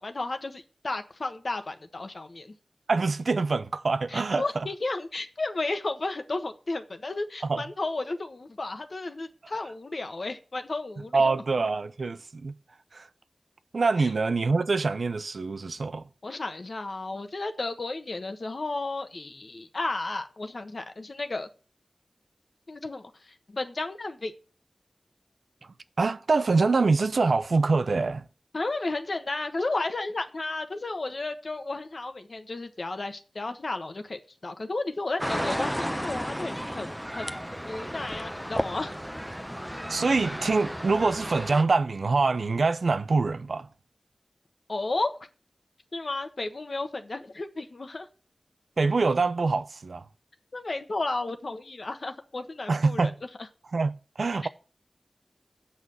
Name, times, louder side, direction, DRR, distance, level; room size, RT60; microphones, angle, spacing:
voice 1, 0.0-2.5 4.1-11.2 14.0-14.1 16.2-21.5 22.7-23.1 23.5-24.3 28.5-37.3 37.7-38.9 44.7-45.1 45.9-48.1 50.5-53.1, left 2 dB, 65° left, 1.2 m, -33 dB
voice 2, 2.9-4.7 7.4-7.6 11.1-12.5 12.9-13.0 13.7-16.0 26.0-28.2 39.9-43.7 48.8-50.0 52.7-53.1 53.7-53.9 54.2-54.5, right 3 dB, 90° right, 0.6 m, -25 dB
sound 1, 35.2-41.6, equal, ahead, 0.7 m, -33 dB
8.4 x 5.7 x 7.8 m
wide cardioid pair, 80°, 0 cm